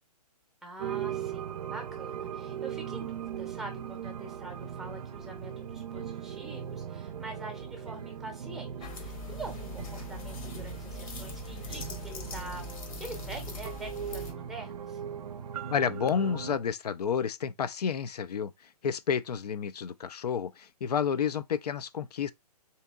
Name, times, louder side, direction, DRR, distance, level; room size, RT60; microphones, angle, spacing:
voice 1, 0.6-12.6 13.0-15.0, right 2 dB, ahead, 0.7 m, -45 dB
sound 1, 0.8-16.6, right 8 dB, 65° right, 0.5 m, -39 dB
sound 2, 8.8-14.3, left 4 dB, 60° left, 0.9 m, -42 dB
voice 2, 15.7-18.5 18.8-22.3, left 7 dB, 75° left, 0.4 m, -30 dB
3.6 x 2.8 x 2.2 m
hypercardioid pair, 140°, 20 cm